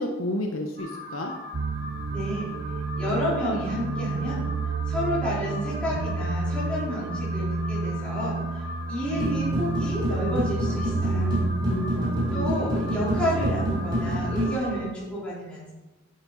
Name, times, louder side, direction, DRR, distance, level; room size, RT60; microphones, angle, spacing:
voice 1, 0.0-1.3 11.1-12.5, left 1 dB, 85° left, 3 dB, 1.1 m, -31 dB
Alarm, 0.8-14.8, left 1 dB, 55° right, 2.6 m, -40 dB
sound 1, 1.5-14.5, right 3 dB, 85° right, 0.7 m, -30 dB
voice 2, 2.1-2.5 3.0-4.5 4.9-8.6 8.9-11.3 12.3-15.7, equal, 5° left, -9 dB, 3.9 m, -30 dB
sound 2, 9.2-14.5, equal, 20° right, 3.5 m, -29 dB
10.0 x 8.8 x 4.1 m, 1.1 s
head